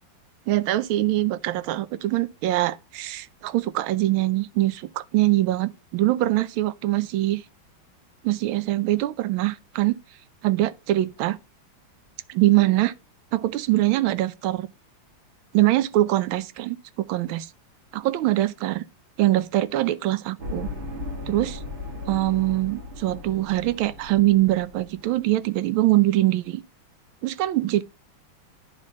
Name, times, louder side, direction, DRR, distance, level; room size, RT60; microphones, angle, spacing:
voice 1, 0.5-7.4 8.2-10.0 10.4-11.4 12.3-12.9 13.3-14.7 15.5-17.5 17.9-18.8 19.2-20.7 21.3-21.6 22.1-26.6 27.2-27.8, right 16 dB, 85° right, 1.4 m, -23 dB
sound 1, 20.4-25.2, left 2 dB, 30° right, 1.3 m, -37 dB
9.7 x 3.2 x 6.2 m
omnidirectional pair, 2.2 m